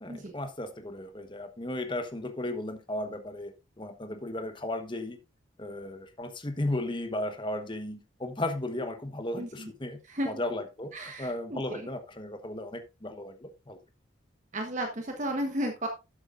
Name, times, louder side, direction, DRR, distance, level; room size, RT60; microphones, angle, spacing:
voice 1, 0.0-5.2 5.6-10.0 10.2-13.8, left 1 dB, 25° left, 1.1 m, -35 dB
voice 2, 9.4-9.7 10.1-10.3 10.9-11.9 14.5-15.9, right 1 dB, 40° right, 1.1 m, -33 dB
12.5 x 8.1 x 2.5 m
head